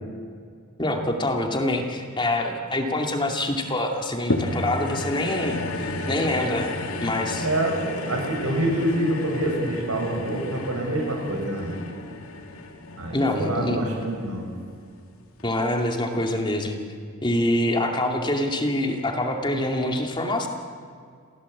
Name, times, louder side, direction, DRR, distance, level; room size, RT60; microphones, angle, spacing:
voice 1, 0.8-6.7 7.0-7.5 13.1-13.9 15.4-16.8 17.2-20.5, left 1 dB, 20° left, 3 dB, 2.4 m, -25 dB
sound 1, 4.3-14.8 15.4-15.5, left 2 dB, 70° left, 2.6 m, -32 dB
voice 2, 7.4-11.7 13.0-14.4, right 1 dB, 85° right, 1 dB, 7.1 m, -26 dB
28.5 x 17.0 x 8.5 m, 2.1 s
head